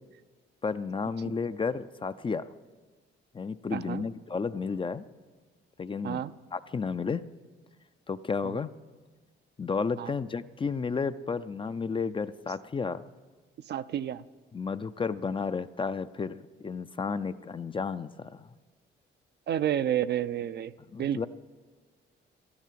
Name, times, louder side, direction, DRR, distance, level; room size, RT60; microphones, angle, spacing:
voice 1, 0.6-2.5 3.3-5.0 5.8-6.2 6.5-7.2 8.1-8.7 9.6-13.0 14.5-18.5 20.9-21.3, left 5 dB, 25° left, 13 dB, 0.5 m, -32 dB
voice 2, 3.7-4.0 6.0-6.3 10.0-10.1 13.7-14.2 19.5-20.7 21.0-21.3, right 10 dB, 60° right, 12 dB, 0.6 m, -30 dB
13.0 x 12.5 x 7.6 m, 1.4 s
cardioid pair, 90°, 20 cm